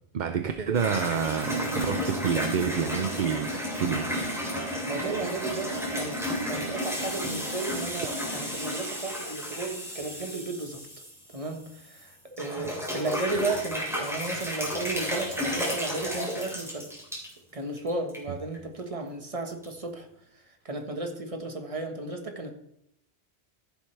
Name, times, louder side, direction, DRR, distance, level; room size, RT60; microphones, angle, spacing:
voice 1, 0.1-4.1 18.3-18.4, right 7 dB, 50° right, 8 dB, 0.6 m, -28 dB
sound 1, 0.7-12.0 12.4-17.3 17.8-18.2 18.5-18.6 19.6-19.7, equal, ahead, 3.3 m, -32 dB
voice 2, 4.7-10.8 11.3-16.9 17.5-20.1 20.6-22.5, right 3 dB, 30° right, 4 dB, 1.5 m, -34 dB
14.5 x 7.7 x 3.3 m, 0.77 s
omnidirectional pair, 1.1 m